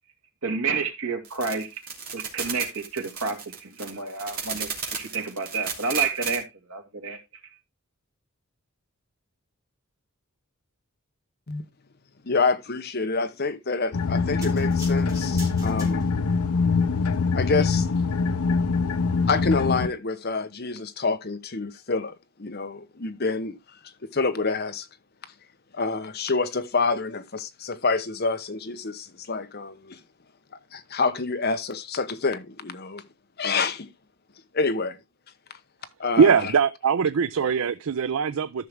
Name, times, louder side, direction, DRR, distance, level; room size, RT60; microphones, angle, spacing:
voice 1, 0.4-1.7 2.1-6.4 6.7-7.2, right 5 dB, 85° right, 2.5 m, -29 dB
sound 1, 1.2-6.4, right 5 dB, 40° right, 2.9 m, -33 dB
voice 2, 12.2-16.0 17.3-17.9 19.3-23.6 24.0-24.9 25.7-30.0 30.7-33.0 33.4-33.9 34.5-35.0 36.0-36.5, left 4 dB, 45° left, 1.0 m, -27 dB
sound 2, 13.9-19.9, left 4 dB, 80° left, 0.6 m, -24 dB
sound 3, 14.4-16.4 17.0-17.2, right 2 dB, 15° right, 3.5 m, -44 dB
voice 3, 36.2-38.7, right 6 dB, 70° right, 0.4 m, -21 dB
13.5 x 6.0 x 3.5 m
head